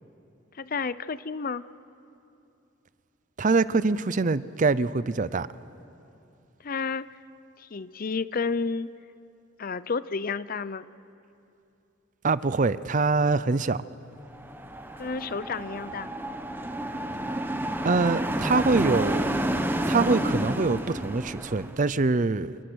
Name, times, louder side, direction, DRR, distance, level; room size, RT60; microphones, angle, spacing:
voice 1, 0.5-1.6 6.6-7.1 7.6-8.9 9.6-10.8 15.0-16.1, left 4 dB, 45° left, 16 dB, 0.6 m, -31 dB
voice 2, 3.4-5.5 12.2-13.8 17.8-19.4 19.9-22.6, right 3 dB, 40° right, 16 dB, 0.5 m, -24 dB
sound 1, 14.3-21.8, right 1 dB, 10° right, 1.1 m, -30 dB
28.0 x 27.5 x 6.3 m, 2.7 s
head